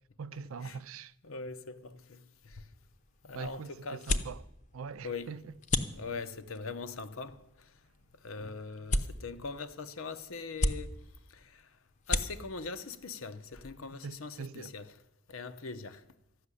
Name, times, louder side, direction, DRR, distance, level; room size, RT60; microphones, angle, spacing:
voice 1, 0.2-1.1 3.3-4.4 4.7-5.4 14.0-14.7, right 5 dB, 85° right, 0.5 m, -42 dB
voice 2, 1.2-2.6 3.2-4.3 5.0-5.4 5.9-7.4 8.2-11.0 11.3-11.6 12.1-15.0 15.3-16.0, left 4 dB, 85° left, 0.9 m, -41 dB
sound 1, 2.6-14.2, left 2 dB, 35° left, 0.7 m, -38 dB
13.5 x 6.5 x 9.8 m
head